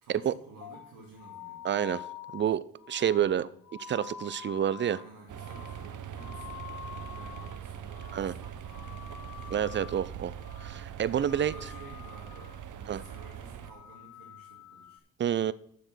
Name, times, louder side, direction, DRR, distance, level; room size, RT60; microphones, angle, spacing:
voice 1, 0.0-1.8 3.3-3.5 4.9-6.5 6.8-9.5 11.3-15.0, right 3 dB, 85° right, 2.5 m, -52 dB
sound 1, 0.6-7.6 7.8-8.4 8.6-10.1 10.4-10.8 11.1-12.6 12.9-13.3 13.6-15.0, left 10 dB, 60° left, 0.7 m, -47 dB
voice 2, 1.6-2.1 2.3-3.5 3.9-5.0 8.1-8.3 9.5-11.5 12.9-13.0 15.2-15.5, right 9 dB, 35° right, 0.4 m, -28 dB
sound 2, 5.3-13.7, right 9 dB, 55° right, 0.8 m, -42 dB
7.5 x 6.9 x 6.2 m
cardioid pair, 95°, 36 cm